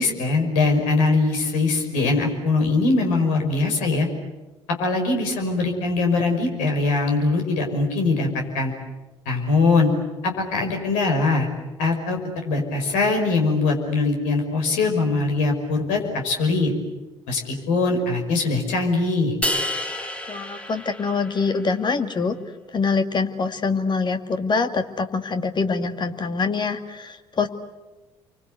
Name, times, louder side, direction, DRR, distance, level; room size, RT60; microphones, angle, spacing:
voice 1, 0.0-4.1 4.8-8.3 8.5-8.7 9.3-9.9 10.2-11.5 11.8-16.7 17.3-19.4, left 3 dB, 60° left, 3 dB, 5.6 m, -22 dB
sound 1, 19.4-21.7, left 1 dB, 10° left, 2.5 m, -29 dB
voice 2, 20.3-22.4 22.7-27.5, left 4 dB, 30° left, 8 dB, 2.1 m, -24 dB
29.5 x 24.5 x 8.2 m, 1.1 s
figure-of-eight pair, 55°, 15 cm